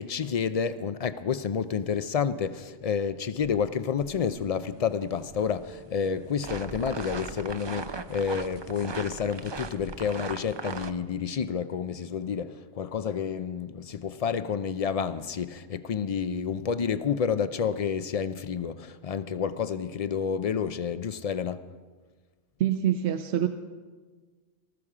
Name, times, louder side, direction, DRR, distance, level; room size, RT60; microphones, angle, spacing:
voice 1, 0.0-21.7, left 7 dB, 65° left, 0.3 m, -29 dB
sound 1, 4.0-10.9, right 4 dB, 40° right, 0.4 m, -39 dB
voice 2, 22.6-23.5, right 11 dB, 65° right, 0.9 m, -25 dB
19.0 x 14.0 x 4.9 m
omnidirectional pair, 1.3 m